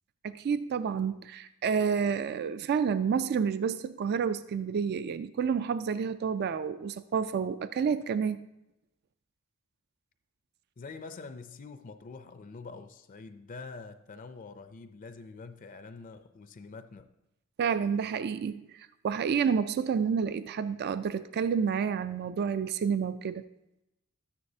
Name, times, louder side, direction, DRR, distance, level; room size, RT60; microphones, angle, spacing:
voice 1, 0.2-8.5 17.6-23.4, right 6 dB, 45° right, 0.3 m, -29 dB
voice 2, 10.8-17.1, left 4 dB, 40° left, 0.4 m, -45 dB
12.5 x 9.7 x 2.7 m
head